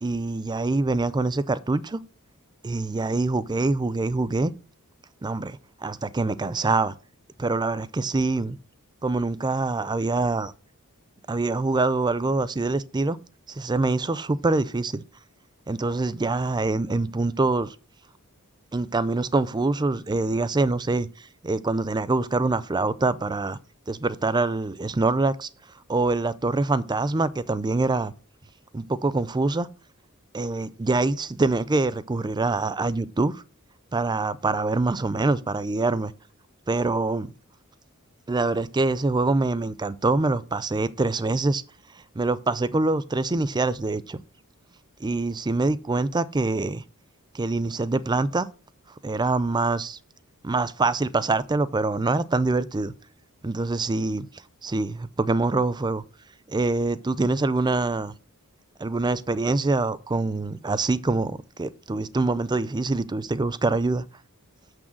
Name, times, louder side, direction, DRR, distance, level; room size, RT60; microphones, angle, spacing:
voice 1, 0.0-2.0 2.6-4.5 5.2-6.9 7.4-8.6 9.0-10.5 11.3-13.2 13.5-15.0 15.7-17.8 18.7-21.1 21.4-23.6 23.9-25.5 25.9-28.1 28.7-29.7 30.3-33.4 33.9-36.1 36.7-37.3 38.3-41.6 42.2-44.2 45.0-46.8 47.3-48.5 49.0-50.0 50.4-52.9 53.4-54.3 54.6-56.0 56.5-58.1 58.8-64.0, right 3 dB, 20° right, 0.5 m, -25 dB
6.6 x 6.3 x 7.5 m
head